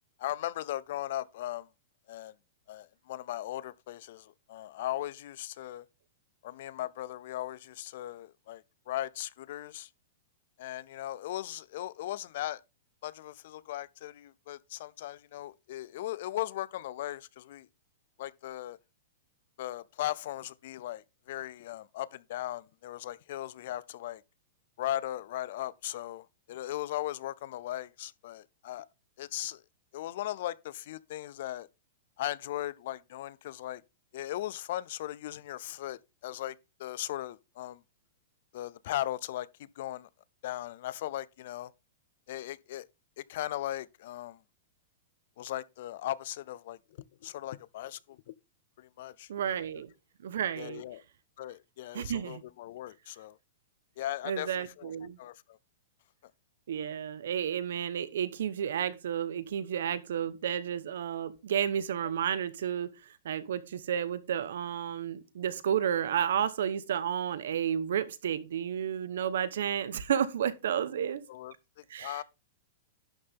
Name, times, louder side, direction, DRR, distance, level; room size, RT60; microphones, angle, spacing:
voice 1, 0.2-1.7 2.1-2.3 2.7-5.9 6.4-9.9 10.6-12.6 13.0-17.7 18.2-18.8 19.6-24.2 24.8-28.9 29.2-29.6 29.9-31.7 32.2-33.8 34.1-37.8 38.5-40.1 40.4-41.7 42.3-42.9 43.2-44.4 45.4-46.8 47.2-48.3 48.8-49.6 50.6-51.0 51.4-53.4 54.0-54.9 55.2-55.6 62.0-62.1 71.3-72.2, left 14 dB, 55° left, 0.5 m, -38 dB
voice 2, 49.3-49.9 50.2-50.8 51.9-52.4 54.3-55.2 56.7-62.9 63.2-71.2 71.9-72.2, right 9 dB, 75° right, 1.0 m, -31 dB
11.5 x 6.5 x 3.6 m
supercardioid pair, 160°, 0 cm